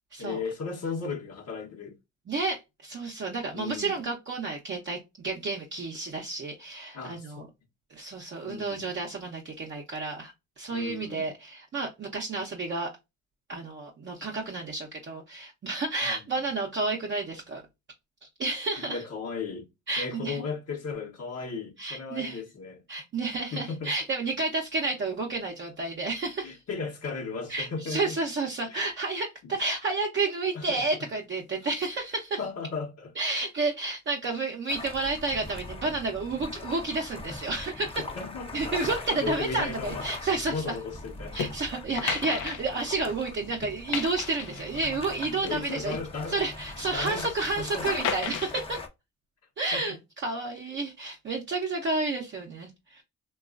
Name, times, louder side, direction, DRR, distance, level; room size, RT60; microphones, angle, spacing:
voice 1, 0.2-1.9 3.5-4.0 6.9-7.5 8.5-8.9 10.7-11.3 16.0-16.5 18.9-19.6 20.0-22.8 23.5-23.9 26.4-28.2 28.7-28.8 29.4-29.5 30.5-31.1 32.4-33.1 38.0-38.8 39.1-40.1 40.5-41.4 45.4-46.4 46.7-47.9 49.7-49.8, left 5 dB, 55° left, 0.9 m, -36 dB
voice 2, 2.3-7.5 7.9-12.9 13.5-17.6 18.4-19.0 19.9-20.4 21.8-22.4 22.9-26.6 27.5-32.4 33.2-38.0 38.5-40.8 41.3-46.0 46.3-48.8 49.6-53.0, right 3 dB, 40° right, 0.7 m, -31 dB
sound 1, 34.7-48.9, left 2 dB, 20° left, 0.6 m, -41 dB
sound 2, 41.4-41.5 41.9-43.3 43.6-44.9 45.4-46.5 46.9-47.3 48.0-48.6, left 8 dB, 85° left, 0.5 m, -34 dB
3.0 x 2.3 x 2.3 m
cardioid pair, 90°, 30 cm